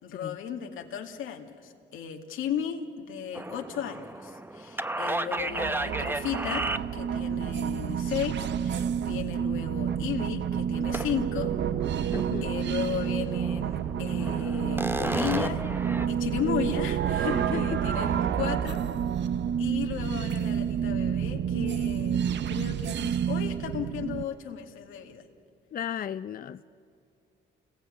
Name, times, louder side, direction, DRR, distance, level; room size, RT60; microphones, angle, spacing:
voice 1, 0.0-11.5 12.0-15.6 16.1-18.8 19.6-22.2 22.5-25.2, left 8 dB, 85° left, 3 dB, 2.3 m, -35 dB
sound 1, 3.3-7.3 10.9-11.4 11.7-12.4 12.7-12.8 13.2-16.1, right 2 dB, 10° right, 0.8 m, -33 dB
sound 2, 5.4-24.2, right 8 dB, 65° right, 0.8 m, -29 dB
voice 2, 12.1-12.5 17.2-17.8 25.7-26.6, left 9 dB, 45° left, 12 dB, 0.6 m, -34 dB
29.5 x 20.5 x 9.2 m, 2.6 s
cardioid pair, 90°, 20 cm